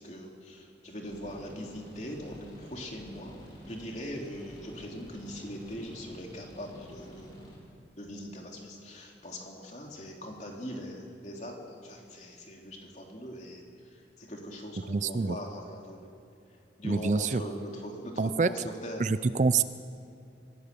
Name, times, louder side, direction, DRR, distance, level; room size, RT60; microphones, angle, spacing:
voice 1, 0.0-3.4 3.6-7.4 8.0-13.6 14.2-16.1 16.8-19.0, equal, 40° left, 0 dB, 3.2 m, -41 dB
sound 1, 1.0-7.6, equal, 25° left, 3.9 m, -49 dB
voice 2, 14.9-15.4 16.8-17.4 18.2-18.5 19.0-19.6, right 4 dB, 40° right, 13 dB, 0.5 m, -26 dB
25.5 x 17.0 x 6.9 m, 2.6 s
head